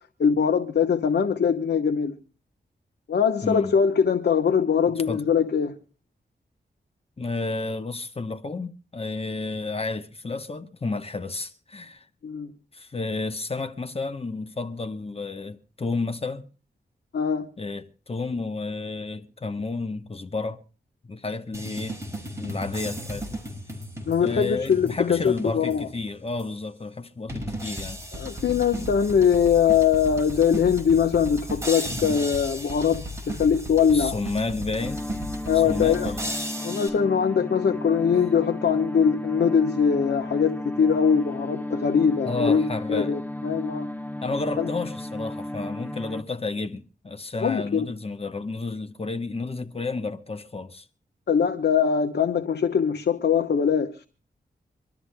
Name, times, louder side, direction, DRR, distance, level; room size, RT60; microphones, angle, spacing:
voice 1, 0.2-2.2 3.1-5.8 12.2-12.5 17.1-17.5 24.1-25.9 28.1-34.2 35.5-36.1 36.6-43.9 44.6-44.7 47.4-47.8 51.3-54.0, left 7 dB, 75° left, 1.0 m, -22 dB
voice 2, 3.4-3.8 5.1-5.2 7.2-12.0 12.7-16.5 17.6-20.6 21.0-22.0 22.4-23.4 24.2-28.0 28.8-28.9 33.9-35.0 35.5-36.3 42.2-43.1 44.2-50.8, left 3 dB, 35° left, 0.9 m, -31 dB
sound 1, 21.5-26.0 26.4-26.5 27.3-36.9, equal, 15° right, 5.6 m, -35 dB
sound 2, 34.8-46.2, left 1 dB, 10° left, 0.9 m, -34 dB
25.0 x 13.0 x 2.2 m
wide cardioid pair, 95°, 18 cm